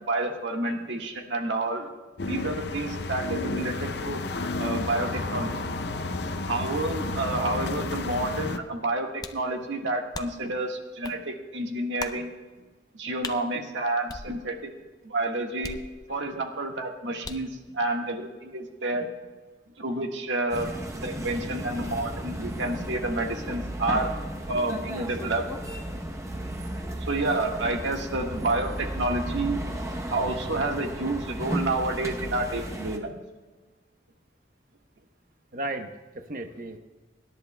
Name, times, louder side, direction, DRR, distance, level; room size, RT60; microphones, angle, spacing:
voice 1, 0.1-1.9 2.3-4.2 4.6-5.5 6.4-12.3 12.9-14.7 15.0-15.8 16.1-19.1 19.8-24.1 24.5-25.5 27.1-29.6 30.1-33.2, right 2 dB, 80° right, 2 dB, 1.6 m, -29 dB
sound 1, 2.2-8.6, left 2 dB, 60° left, 0.6 m, -31 dB
sound 2, 9.2-9.5 10.1-10.5 11.0-11.2 12.0-12.3 13.2-13.4 14.1-14.7 15.6-16.3 17.2-17.6, left 4 dB, 20° left, 0.5 m, -39 dB
sound 3, 20.5-33.0, right 1 dB, 15° right, 0.8 m, -34 dB
voice 2, 35.5-36.8, right 1 dB, 45° right, 6 dB, 0.9 m, -35 dB
24.5 x 11.0 x 2.3 m, 1.3 s
head